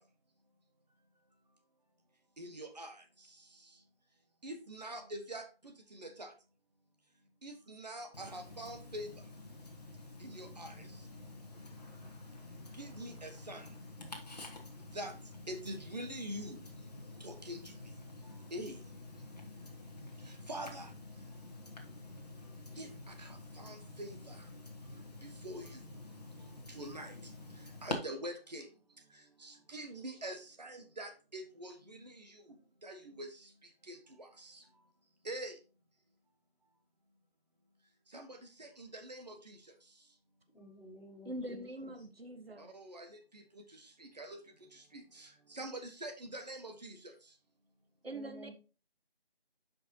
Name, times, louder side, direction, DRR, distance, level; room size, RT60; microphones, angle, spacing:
voice 1, 2.4-2.9 4.4-5.4 5.9-6.3 7.4-9.1 10.2-10.7 12.8-13.6 14.9-15.1 15.5-16.6 17.2-17.6 18.5-18.8 20.5-20.9 22.8-22.9 23.2-23.3 23.6-24.3 25.4-25.7 26.7-27.1 27.8-28.7 29.4-32.1 32.8-33.3 33.9-34.3 35.2-35.5 38.1-38.3 38.6-39.5 42.7-43.1 44.2-44.4 44.9-45.3 45.5-47.0, right 1 dB, 40° right, 7 dB, 1.4 m, -44 dB
Tick-tock, 8.1-27.9, left 2 dB, 40° left, 1.5 m, -48 dB
voice 2, 40.5-41.6 48.1-48.5, left 1 dB, ahead, -19 dB, 1.2 m, -52 dB
voice 3, 41.2-42.7 48.0-48.5, right 1 dB, 70° right, 7 dB, 1.4 m, -43 dB
9.8 x 5.4 x 2.8 m, 0.33 s
figure-of-eight pair, 165°, 31 cm